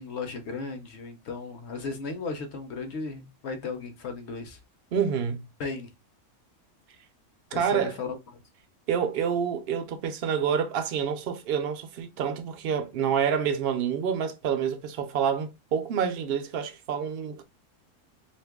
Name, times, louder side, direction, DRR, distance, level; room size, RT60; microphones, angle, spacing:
voice 1, 0.0-4.6 5.6-5.9 7.5-8.4, left 4 dB, 60° left, 0.8 m, -35 dB
voice 2, 4.9-5.5 7.5-8.0 8.9-17.4, right 7 dB, 70° right, 0.5 m, -28 dB
2.8 x 2.6 x 3.4 m
omnidirectional pair, 1.5 m